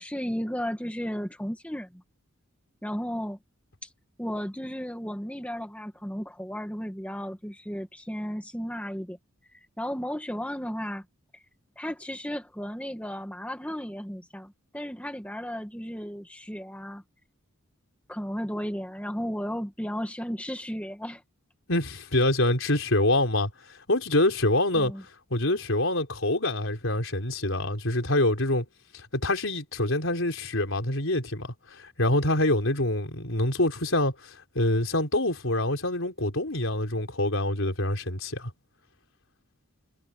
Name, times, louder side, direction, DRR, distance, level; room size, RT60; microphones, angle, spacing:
voice 1, 0.0-2.0 2.8-3.4 3.8-3.9 4.2-9.2 9.5-11.0 11.8-17.0 18.1-21.2 24.7-25.0, equal, 5° left, 1.8 m, -34 dB
voice 2, 21.7-24.9 25.3-28.6 28.9-38.5, left 1 dB, 65° left, 4.2 m, -26 dB
head